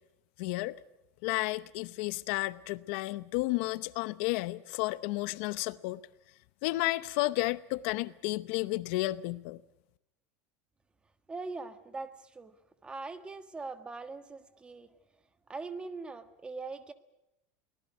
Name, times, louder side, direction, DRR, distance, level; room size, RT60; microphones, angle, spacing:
voice 1, 0.4-0.8 1.2-6.0 6.6-9.6, left 20 dB, 65° left, 0.8 m, -32 dB
voice 2, 11.3-12.6 12.8-14.9 15.5-16.9, right 3 dB, 15° right, 1.4 m, -41 dB
23.5 x 19.0 x 8.3 m
supercardioid pair, 140°, 7 cm